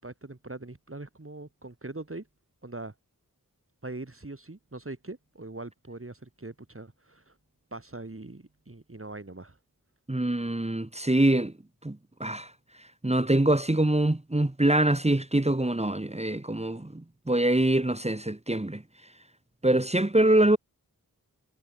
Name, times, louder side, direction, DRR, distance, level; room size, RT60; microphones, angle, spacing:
voice 1, 0.0-2.3 2.6-2.9 3.8-7.4 7.7-9.6, right 2 dB, 35° right, 7.7 m, -42 dB
voice 2, 10.1-11.5 11.8-12.5 13.0-18.8 19.6-20.6, right 1 dB, 20° right, 1.9 m, -24 dB
wide cardioid pair, 70°, 35 cm